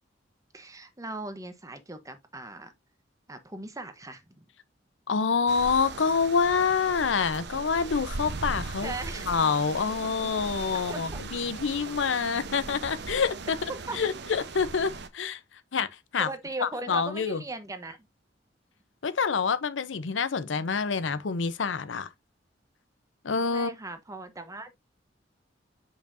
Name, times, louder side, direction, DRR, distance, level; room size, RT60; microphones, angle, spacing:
voice 1, 0.5-2.7 3.3-4.5 8.8-9.3 10.9-11.2 13.7-14.0 16.2-18.0 23.5-24.8, right 2 dB, 20° right, 1.0 m, -38 dB
voice 2, 5.1-8.9 9.3-13.6 13.9-15.4 15.7-15.9 16.1-16.3 16.6-17.4 19.0-22.1 23.2-23.7, left 5 dB, 90° left, 0.7 m, -27 dB
sound 1, 5.5-15.1, right 3 dB, 65° right, 0.9 m, -38 dB
6.8 x 5.5 x 2.6 m
head